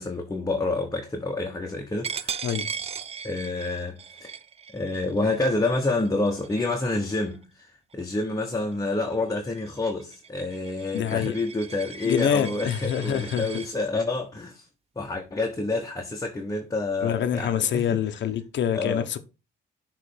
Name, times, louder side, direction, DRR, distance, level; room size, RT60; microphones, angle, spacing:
voice 1, 0.0-2.4 3.2-4.3 4.7-14.7 15.0-18.0 18.7-19.1, left 2 dB, 20° left, 1.2 m, -28 dB
Coin (dropping), 2.0-7.4 7.9-8.2 8.6-13.7, right 6 dB, 30° right, 0.4 m, -38 dB
voice 2, 10.9-11.3 12.0-13.5 17.0-19.2, left 9 dB, 65° left, 0.9 m, -26 dB
6.6 x 3.4 x 4.9 m
cardioid pair, 90°, 20 cm